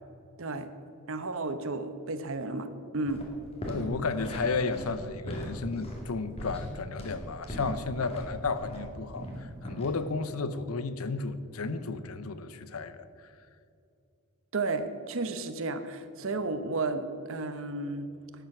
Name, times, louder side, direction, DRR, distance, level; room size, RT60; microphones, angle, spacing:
voice 1, 1.1-3.2 14.5-18.1, right 3 dB, 65° right, 0.9 m, -33 dB
sound 1, 3.1-3.3 3.6-8.9 9.2-9.9, equal, 30° left, 2.1 m, -39 dB
voice 2, 3.7-13.1, left 4 dB, 80° left, 0.7 m, -33 dB
12.0 x 9.3 x 5.9 m
head